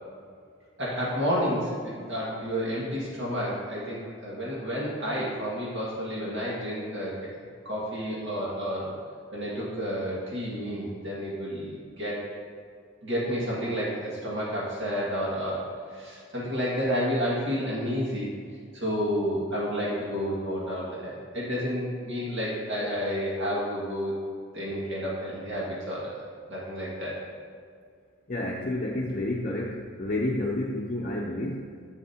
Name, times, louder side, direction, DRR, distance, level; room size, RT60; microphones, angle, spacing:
voice 1, 0.8-7.1 7.7-9.0 9.3-12.2 13.0-18.3 18.7-24.1 24.5-26.2 26.5-27.1, equal, 65° right, -7 dB, 1.9 m, -30 dB
voice 2, 28.3-31.6, left 1 dB, 40° left, -2 dB, 0.6 m, -30 dB
11.5 x 7.6 x 2.8 m, 2.1 s
head